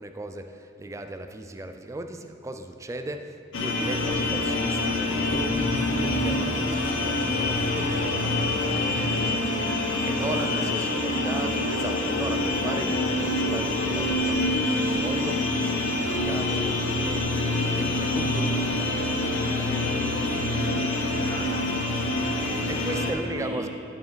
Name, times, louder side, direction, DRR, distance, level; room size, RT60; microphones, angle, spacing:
voice 1, 0.0-8.3 8.8-9.3 10.0-18.9 22.7-23.7, right 2 dB, 15° right, 7 dB, 0.3 m, -37 dB
sound 1, 3.5-23.1, left 2 dB, 75° left, 0.9 m, -26 dB
Motor vehicle (road) / Accelerating revving vroom, 3.9-18.8 19.1-19.4 20.0-20.1 20.4-20.5 20.7-20.8 22.1-22.2, left 1 dB, 35° left, 0.7 m, -43 dB
voice 2, 7.8-11.0 18.2-23.7, equal, 20° left, -14 dB, 1.8 m, -40 dB
11.0 x 4.8 x 4.5 m, 3.0 s
head